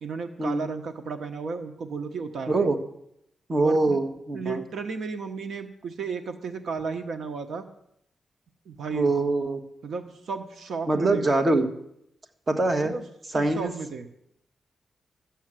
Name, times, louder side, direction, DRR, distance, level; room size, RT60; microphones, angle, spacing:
voice 1, 0.0-2.5 3.6-4.0 4.3-7.7 8.7-9.1 9.8-11.3 12.8-13.0 13.3-14.1, right 5 dB, 75° right, 7 dB, 1.1 m, -33 dB
voice 2, 3.5-4.6 8.9-9.6 10.9-11.7 12.5-12.9 13.3-13.7, right 2 dB, 35° right, 6 dB, 1.4 m, -23 dB
13.5 x 7.3 x 8.9 m, 0.75 s
wide cardioid pair, 125°, 0 cm